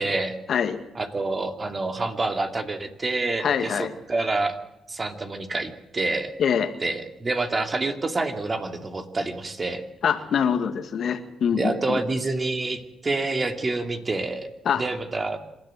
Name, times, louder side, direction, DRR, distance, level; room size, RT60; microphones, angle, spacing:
voice 1, 0.0-0.4 0.9-4.6 4.9-6.3 6.8-9.8 11.6-15.4, right 3 dB, 30° right, 6 dB, 2.7 m, -27 dB
voice 2, 3.4-3.9 6.4-6.7 10.0-12.0 14.7-14.8, left 7 dB, 60° left, 8 dB, 1.9 m, -24 dB
26.5 x 13.0 x 7.8 m, 0.96 s
cardioid pair, 90°, 0 cm